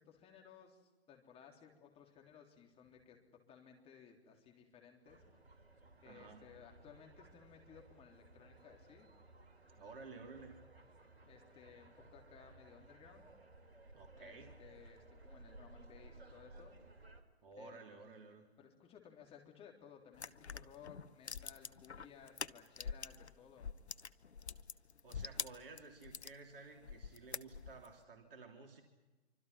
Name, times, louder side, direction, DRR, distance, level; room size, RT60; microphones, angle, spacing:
voice 1, 0.0-3.2 3.5-5.2 6.0-9.1 11.2-13.2 14.1-16.7 17.5-18.1 18.6-23.7, left 8 dB, 15° left, 2 dB, 3.6 m, -59 dB
sound 1, 5.0-17.2, right 2 dB, 70° right, 3.3 m, -59 dB
voice 2, 6.0-6.5 9.8-10.6 13.9-14.6 17.4-18.5 25.0-28.8, right 4 dB, 55° right, 3 dB, 3.2 m, -54 dB
sound 2, 20.1-23.3 23.6-26.4 26.8-27.9, left 6 dB, 80° left, 0.9 m, -45 dB
26.5 x 25.0 x 5.9 m, 1.2 s
figure-of-eight pair, 120°, 33 cm